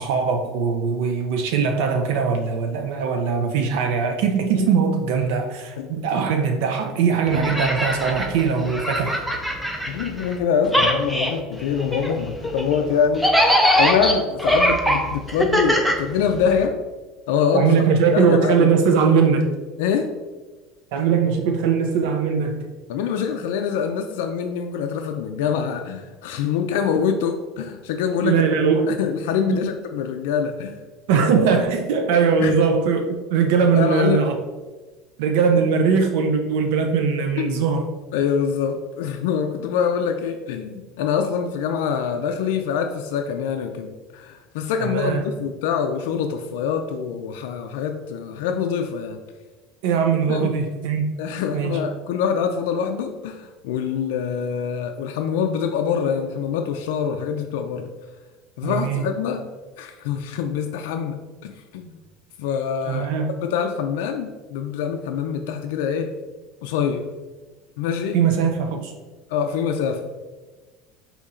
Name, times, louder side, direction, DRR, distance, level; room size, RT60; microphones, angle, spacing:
voice 1, 0.0-9.2 17.5-19.5 20.9-22.7 28.2-29.0 29.5-29.6 31.1-34.4 35.2-37.9 44.8-45.2 49.8-51.1 51.5-51.8 58.6-59.0 62.9-63.4 68.1-68.9, right 6 dB, 80° right, 4 dB, 0.4 m, -20 dB
voice 2, 5.8-6.1 9.9-16.8 17.3-17.7 18.1-18.8 19.8-20.1 22.9-28.4 28.9-30.8 32.4-32.6 33.7-34.2 37.4-37.7 38.1-49.2 50.3-50.6 51.2-57.9 58.6-59.5 59.8-62.0 62.4-63.1 63.4-66.1 66.6-67.1 67.8-68.2 69.3-70.1, left 7 dB, 85° left, 5 dB, 0.3 m, -25 dB
sound 1, 7.3-10.4 10.6-16.6, equal, ahead, 0.4 m, -22 dB
4.1 x 2.8 x 3.7 m, 1.2 s
cardioid pair, 155°, 0 cm